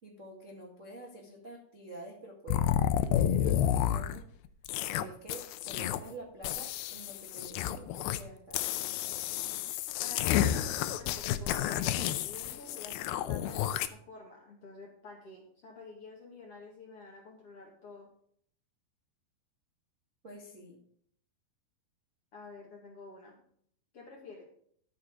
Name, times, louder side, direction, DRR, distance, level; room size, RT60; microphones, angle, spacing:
voice 1, 0.0-4.3 4.9-8.6 20.2-20.8, right 1 dB, 45° right, -2 dB, 1.0 m, -48 dB
sound 1, 2.5-4.2 4.6-5.0 5.3-6.1 6.4-8.2 8.5-13.9, left 11 dB, 80° left, 2.2 m, -30 dB
voice 2, 10.0-18.1 22.3-23.4 23.9-24.4, left 3 dB, 45° left, -1 dB, 2.0 m, -49 dB
12.5 x 6.6 x 5.1 m, 0.62 s
omnidirectional pair, 4.9 m